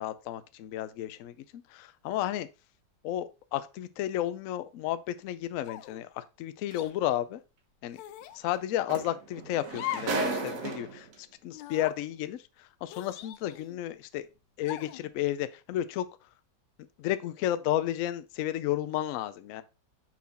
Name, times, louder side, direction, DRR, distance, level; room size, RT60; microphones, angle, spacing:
voice 1, 0.0-2.5 3.0-7.4 7.8-8.0 8.3-14.3 14.6-16.1 17.0-19.6, left 12 dB, 70° left, 0.8 m, -32 dB
sound 1, 5.6-6.0 6.7-6.9 7.9-8.4 9.7-10.2 10.6-10.7 11.5-12.0 12.9-13.8 14.6-15.0, left 14 dB, 85° left, 1.2 m, -40 dB
sound 2, 6.7-6.8 8.5-8.6 8.9-11.1 12.1-12.2, right 3 dB, 50° right, 1.6 m, -34 dB
6.2 x 4.2 x 4.0 m
omnidirectional pair, 1.9 m